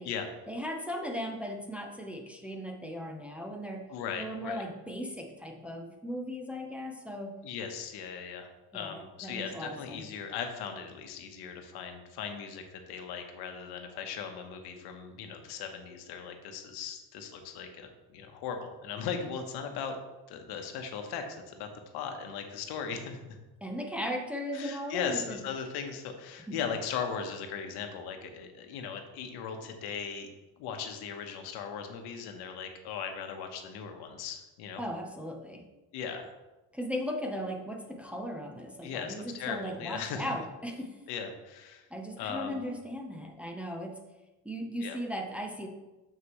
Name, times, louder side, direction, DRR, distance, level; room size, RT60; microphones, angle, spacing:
voice 1, 0.5-3.9 4.2-7.4 8.7-10.0 23.6-25.4 26.5-26.6 34.8-35.7 36.7-41.0 41.9-44.0 44.4-45.7, equal, 5° right, 1 dB, 0.7 m, -37 dB
voice 2, 3.9-4.6 7.4-20.0 20.3-21.7 21.9-23.4 24.5-30.3 30.6-34.8 35.9-36.3 38.8-40.3 41.1-41.9 42.2-42.6 44.8-45.0, left 6 dB, 80° left, 5 dB, 1.1 m, -38 dB
6.7 x 6.3 x 3.1 m, 1.1 s
cardioid pair, 120°, 38 cm